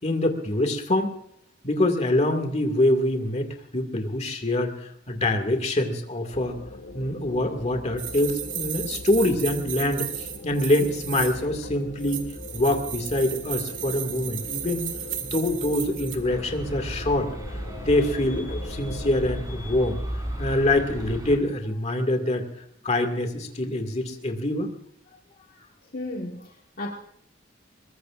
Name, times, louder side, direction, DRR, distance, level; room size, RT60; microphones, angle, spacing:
voice 1, 0.0-1.2 1.6-4.7 5.1-6.6 6.9-12.2 12.5-14.9 15.3-17.3 17.8-20.0 20.4-22.4 22.8-24.7, left 1 dB, 35° left, 5 dB, 2.2 m, -25 dB
sound 1, 6.3-19.4, left 2 dB, 70° left, 1.9 m, -41 dB
sound 2, 8.0-11.5 12.0-16.2, right 11 dB, 80° right, 2.1 m, -34 dB
sound 3, 16.2-21.4, equal, 20° right, 4.5 m, -34 dB
voice 2, 25.9-26.9, left 2 dB, 50° left, 0 dB, 1.6 m, -34 dB
22.0 x 21.5 x 2.6 m, 0.69 s
head